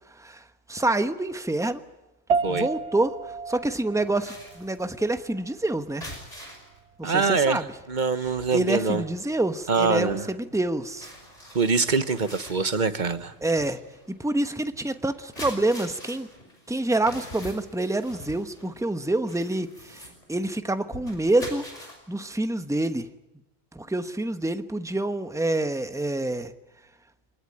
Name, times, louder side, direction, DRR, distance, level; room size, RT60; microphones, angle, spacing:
voice 1, 0.7-1.8 2.5-6.1 7.0-7.7 8.5-11.1 13.4-13.8 14.2-16.3 16.7-21.6 22.1-23.1 23.7-26.5, right 2 dB, 5° right, 9 dB, 1.1 m, -27 dB
sound 1, 2.3-11.9, right 5 dB, 80° right, 1.4 m, -35 dB
sound 2, 4.0-6.8 7.2-7.4 7.7-22.0, equal, 35° left, 6.1 m, -45 dB
voice 2, 7.0-9.0 9.7-10.2 11.5-13.3, right 4 dB, 45° right, 11 dB, 1.4 m, -24 dB
25.0 x 20.0 x 9.9 m, 0.99 s
omnidirectional pair, 1.1 m